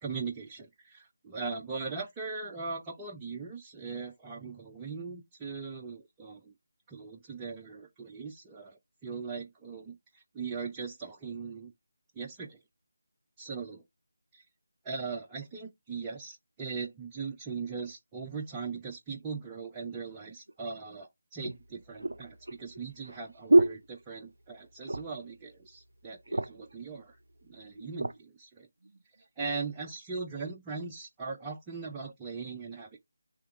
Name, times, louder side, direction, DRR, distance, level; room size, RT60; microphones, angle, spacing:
voice 1, 0.0-6.5 6.9-11.7 12.2-12.6 13.4-13.8 14.3-14.4 14.8-27.2 27.4-28.7 29.4-33.0, right 4 dB, 15° right, 0.5 m, -39 dB
sound 1, 20.5-20.6 21.4-24.5 24.8-25.3 25.6-25.7 26.0-26.7 27.4-28.2 28.8-29.0, right 2 dB, 70° right, 0.4 m, -28 dB
3.5 x 2.8 x 4.4 m
figure-of-eight pair, 160°, 0 cm